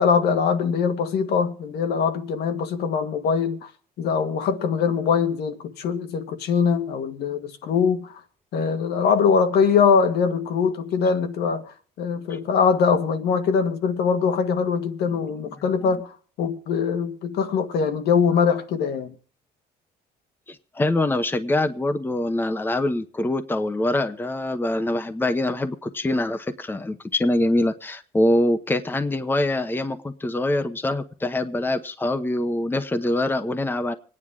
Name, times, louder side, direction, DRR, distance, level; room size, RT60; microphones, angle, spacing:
voice 1, 0.0-3.7 4.0-8.2 8.5-19.1, left 6 dB, 75° left, 1.8 m, -22 dB
voice 2, 20.5-33.9, left 1 dB, 10° left, 0.9 m, -24 dB
26.0 x 9.8 x 3.6 m
cardioid pair, 110°, 17 cm